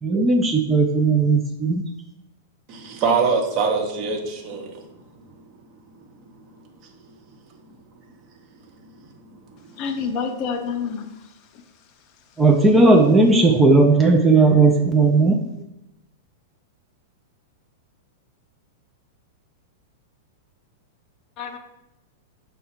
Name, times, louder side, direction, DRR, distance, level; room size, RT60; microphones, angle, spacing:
voice 1, 0.0-1.8 12.4-15.5, right 3 dB, 15° right, 0.4 m, -16 dB
voice 2, 2.7-4.9 6.4-6.5 9.0-9.8, right 5 dB, 45° right, 0.8 m, -24 dB
voice 3, 9.8-11.1 21.4-21.6, left 6 dB, 40° left, 0.6 m, -27 dB
5.5 x 2.2 x 4.4 m
hypercardioid pair, 110°, 0 cm